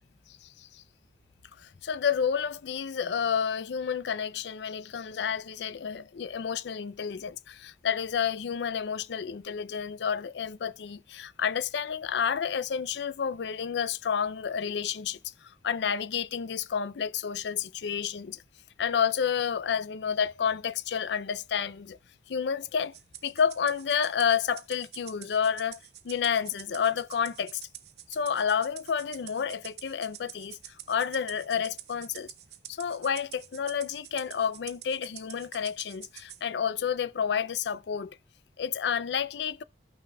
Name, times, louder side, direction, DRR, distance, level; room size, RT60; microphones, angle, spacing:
voice 1, 0.4-0.8 1.6-15.2 15.6-18.4 18.8-22.0 22.3-22.9 23.2-25.8 26.0-27.6 28.1-30.6 30.9-32.3 32.7-38.2 38.6-39.6, left 7 dB, 80° left, 0.4 m, -30 dB
Rattle (instrument), 22.9-36.4, right 12 dB, 70° right, 0.7 m, -47 dB
14.5 x 5.8 x 2.2 m
head